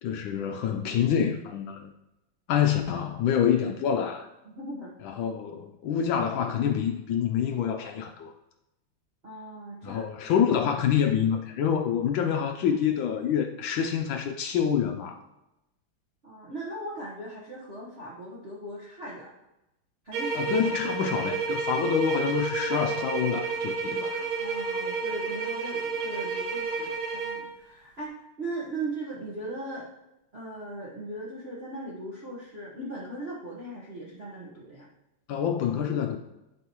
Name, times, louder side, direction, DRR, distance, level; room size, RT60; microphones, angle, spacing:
voice 1, 0.0-1.9 2.5-4.3 5.0-8.3 9.8-15.2 20.3-24.2 35.3-36.2, left 8 dB, 75° left, 5 dB, 1.2 m, -27 dB
voice 2, 4.4-4.9 9.2-10.0 16.2-19.3 20.0-20.4 24.4-29.9 30.3-34.9, right 2 dB, 35° right, -7 dB, 1.1 m, -38 dB
sound 1, 20.1-27.5, right 4 dB, 85° right, 2.1 m, -30 dB
11.5 x 4.2 x 3.0 m, 0.93 s
omnidirectional pair, 2.4 m